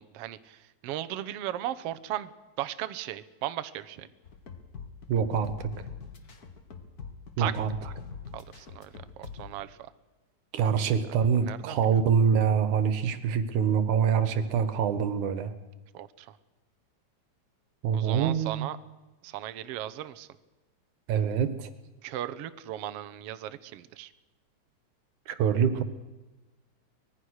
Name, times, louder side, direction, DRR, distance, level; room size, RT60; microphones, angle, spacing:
voice 1, 0.0-2.3 2.6-4.1 7.4-7.7 8.3-8.9 9.2-9.9 10.8-12.0 15.9-16.4 17.9-18.8 19.2-20.3 22.0-24.1, right 13 dB, 65° right, 13 dB, 1.7 m, -37 dB
sound 1, 4.2-9.5, left 6 dB, 40° left, 1.8 m, -43 dB
voice 2, 5.1-5.7 7.4-7.7 10.5-15.5 17.8-18.7 21.1-21.7 25.3-25.8, right 7 dB, 90° right, 12 dB, 2.8 m, -25 dB
24.5 x 20.0 x 6.5 m, 1.1 s
omnidirectional pair, 3.4 m